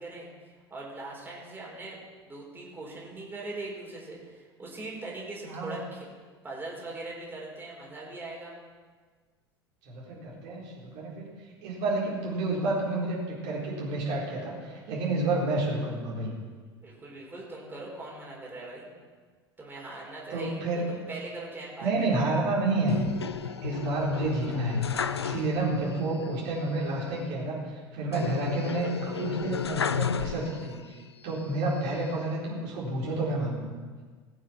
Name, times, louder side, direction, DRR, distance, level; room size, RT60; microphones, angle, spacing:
voice 1, 0.0-2.0 2.2-6.1 6.4-8.5 16.8-18.9 19.6-20.6 20.9-21.9, right 2 dB, 15° right, -4 dB, 4.6 m, -41 dB
voice 2, 5.4-5.8 9.8-11.3 11.6-16.3 20.3-20.9 21.8-23.1 23.6-31.0 31.2-33.6, right 2 dB, 50° right, -5 dB, 4.3 m, -30 dB
sound 1, 22.9-25.9 26.2-26.3 28.1-30.9 31.4-32.2, left 7 dB, 80° left, 0.4 m, -33 dB
19.5 x 7.3 x 6.2 m, 1.5 s
figure-of-eight pair, 75°, 13 cm